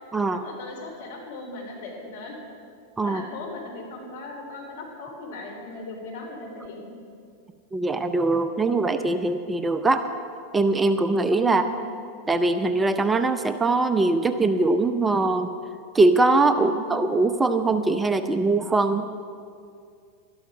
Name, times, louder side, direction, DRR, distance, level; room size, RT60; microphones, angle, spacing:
voice 1, 0.3-2.3 3.0-6.9 11.4-11.8 16.5-16.9, left 2 dB, 65° left, 1 dB, 3.4 m, -38 dB
voice 2, 7.7-10.1 10.5-11.6 12.3-15.5 15.9-19.1, right 3 dB, 15° right, 9 dB, 0.6 m, -22 dB
12.5 x 12.0 x 6.1 m, 2.3 s
hypercardioid pair, 95°, 0 cm